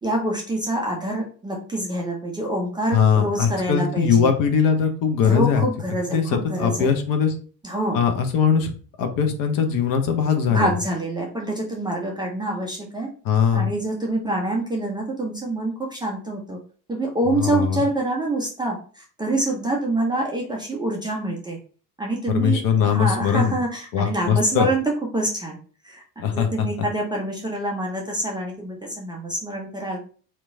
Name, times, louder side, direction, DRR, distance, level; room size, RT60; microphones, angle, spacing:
voice 1, 0.0-4.3 5.2-6.9 7.6-8.0 10.5-13.1 13.5-16.6 16.9-21.6 22.0-25.6 25.8-30.1, right 1 dB, 10° right, -2 dB, 0.4 m, -26 dB
voice 2, 2.9-5.6 6.1-7.3 7.9-8.7 9.0-10.7 13.2-13.7 17.3-17.8 22.3-23.6 23.9-24.7 26.2-26.7, left 7 dB, 45° left, 6 dB, 0.7 m, -20 dB
2.9 x 2.2 x 3.6 m, 0.42 s
figure-of-eight pair, 65°, 49 cm